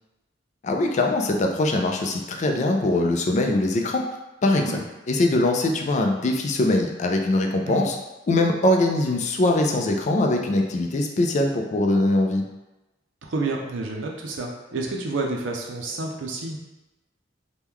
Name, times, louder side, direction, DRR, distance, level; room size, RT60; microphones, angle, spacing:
voice 1, 0.6-4.0 4.4-4.8 5.1-8.0 8.3-12.4, left 2 dB, 40° left, 3 dB, 0.4 m, -22 dB
voice 2, 13.2-16.6, right 3 dB, 85° right, 0 dB, 0.6 m, -29 dB
3.0 x 2.2 x 3.6 m, 1.0 s
head